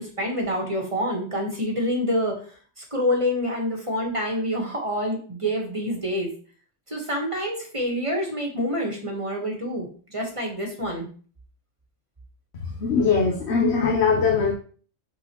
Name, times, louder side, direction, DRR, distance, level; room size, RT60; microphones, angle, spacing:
voice 1, 0.0-2.3 2.8-6.3 6.9-11.1, equal, 30° right, 0 dB, 1.4 m, -27 dB
voice 2, 12.6-14.5, left 5 dB, 65° left, 1 dB, 1.2 m, -21 dB
8.9 x 4.0 x 3.0 m, 0.43 s
omnidirectional pair, 1.2 m